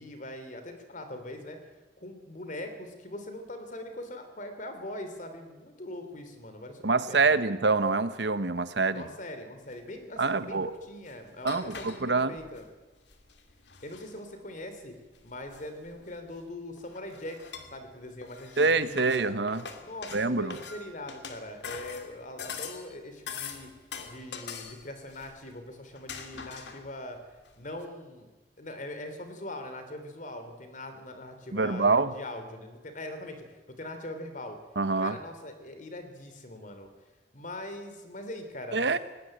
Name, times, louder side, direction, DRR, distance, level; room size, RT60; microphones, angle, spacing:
voice 1, 0.0-1.6 2.0-7.4 8.9-12.6 13.8-14.9 15.2-19.3 19.8-23.7 24.1-27.2 27.6-28.3 28.6-34.6 35.0-36.9 37.3-39.0, left 1 dB, 45° left, 7 dB, 3.2 m, -41 dB
voice 2, 6.8-9.0 10.2-10.7 11.4-12.3 18.6-19.6 20.1-20.6 31.5-32.1 34.8-35.2 38.7-39.0, right 3 dB, 80° right, 13 dB, 1.1 m, -26 dB
sound 1, 9.7-9.8 10.8-12.7 13.1-14.2 15.1-16.4 16.8-17.9 18.2-22.9 23.3-25.6 25.9-27.0 27.5-27.6 27.8-27.9, left 6 dB, 80° left, 2.3 m, -43 dB
19.5 x 17.5 x 8.9 m, 1.2 s
head